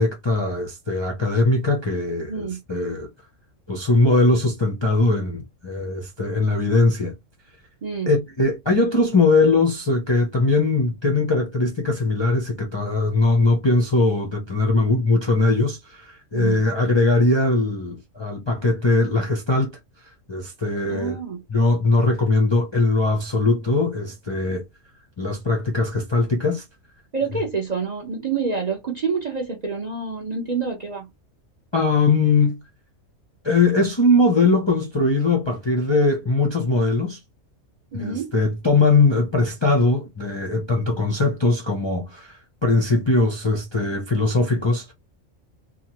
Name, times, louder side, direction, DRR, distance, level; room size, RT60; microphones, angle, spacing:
voice 1, 0.0-3.1 3.7-7.1 8.1-19.8 20.3-21.2 21.5-24.6 25.2-26.6 31.7-32.6 33.4-37.2 37.9-44.9, left 2 dB, 35° left, 0.4 m, -20 dB
voice 2, 7.8-8.1 16.3-16.7 20.9-21.4 27.1-31.1 37.9-38.3, right 5 dB, 45° right, 0.6 m, -27 dB
2.8 x 2.3 x 2.9 m
omnidirectional pair, 1.3 m